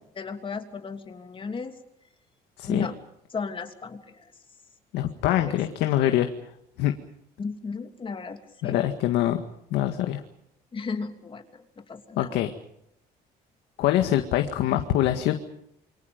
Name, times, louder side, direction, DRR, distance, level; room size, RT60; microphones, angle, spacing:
voice 1, 0.2-1.8 2.7-2.9 3.3-4.3 5.3-5.6 7.4-8.8 10.7-12.4, left 4 dB, 30° left, 6 dB, 3.0 m, -35 dB
voice 2, 4.9-6.3 6.8-6.9 8.6-9.4 9.7-10.2 12.2-12.5 13.8-15.3, left 12 dB, 85° left, 6 dB, 1.9 m, -24 dB
28.0 x 24.5 x 5.3 m, 0.75 s
cardioid pair, 110°, 17 cm